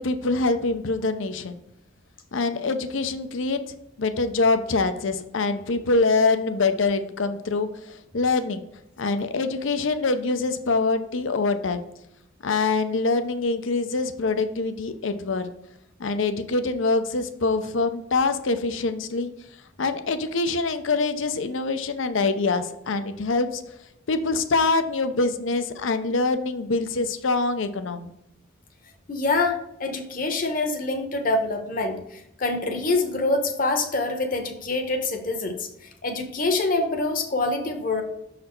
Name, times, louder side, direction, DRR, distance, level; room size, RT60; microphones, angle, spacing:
voice 1, 0.0-1.6 2.3-3.6 4.0-8.6 9.0-11.8 12.4-15.5 16.0-19.3 19.8-23.6 24.1-28.1, left 3 dB, 75° left, 9 dB, 0.6 m, -24 dB
voice 2, 29.1-35.7 36.0-38.0, left 2 dB, 45° left, 4 dB, 1.0 m, -25 dB
6.5 x 4.1 x 4.4 m, 0.83 s
head